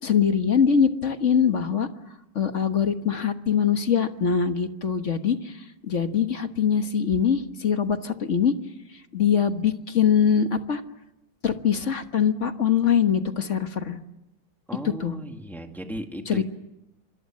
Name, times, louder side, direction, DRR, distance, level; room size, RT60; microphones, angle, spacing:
voice 1, 0.0-1.9 2.3-5.5 5.8-8.5 9.1-10.8 11.4-14.0 14.8-15.2 16.2-16.4, left 7 dB, 40° left, 8 dB, 1.4 m, -23 dB
voice 2, 14.7-16.4, equal, ahead, 4 dB, 2.0 m, -36 dB
26.0 x 26.0 x 7.6 m, 0.91 s
omnidirectional pair, 2.3 m